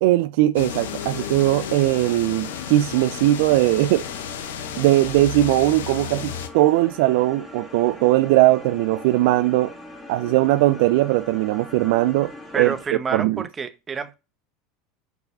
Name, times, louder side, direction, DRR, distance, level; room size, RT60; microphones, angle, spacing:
voice 1, 0.0-4.0 4.8-9.7 10.1-12.7 13.1-13.4, right 16 dB, 70° right, 0.3 m, -19 dB
sound 1, 0.5-6.5, left 9 dB, 80° left, 0.8 m, -33 dB
sound 2, 0.7-12.9, left 1 dB, 5° left, 2.0 m, -41 dB
voice 2, 12.5-14.1, right 5 dB, 25° right, 1.0 m, -28 dB
5.4 x 4.6 x 5.2 m
hypercardioid pair, 90°, 0 cm